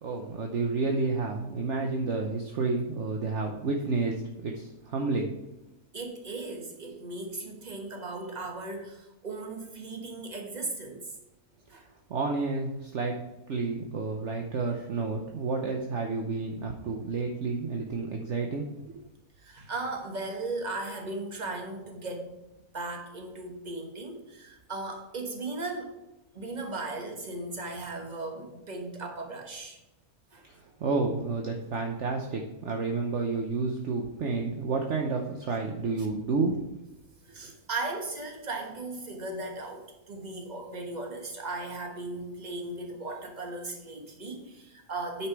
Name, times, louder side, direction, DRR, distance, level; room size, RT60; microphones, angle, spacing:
voice 1, 0.0-5.3 12.1-13.2 13.5-19.0 30.5-36.6, right 3 dB, 55° right, 2 dB, 1.1 m, -30 dB
voice 2, 5.9-11.1 11.7-11.9 19.4-22.3 22.7-25.9 26.3-29.8 30.3-30.4 36.0-36.1 37.2-45.3, right 2 dB, 30° right, 3 dB, 1.5 m, -37 dB
9.6 x 5.9 x 4.7 m, 0.97 s
omnidirectional pair, 1.6 m